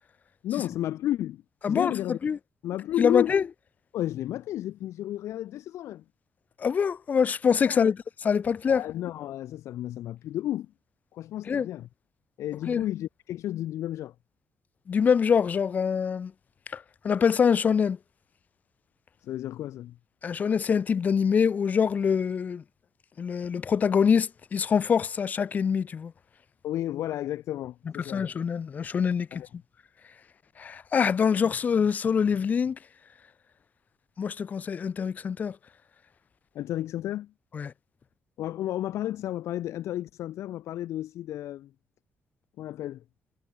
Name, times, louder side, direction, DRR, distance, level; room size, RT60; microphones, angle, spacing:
voice 1, 0.4-2.2 2.6-3.4 3.9-6.0 7.7-7.9 8.7-10.7 11.1-11.9 12.4-14.1 19.2-20.0 26.6-28.3 29.3-29.5 36.5-37.3 38.4-41.7 42.6-43.0, left 13 dB, 85° left, 3.3 m, -32 dB
voice 2, 1.6-2.4 3.0-3.4 6.6-8.0 8.2-8.8 11.5-11.7 12.7-12.8 14.9-16.3 16.7-18.0 20.2-22.6 23.2-26.1 28.1-29.4 30.6-32.8 34.2-35.6 37.5-37.7, left 6 dB, 35° left, 2.9 m, -25 dB
cardioid pair, 180°, 5 cm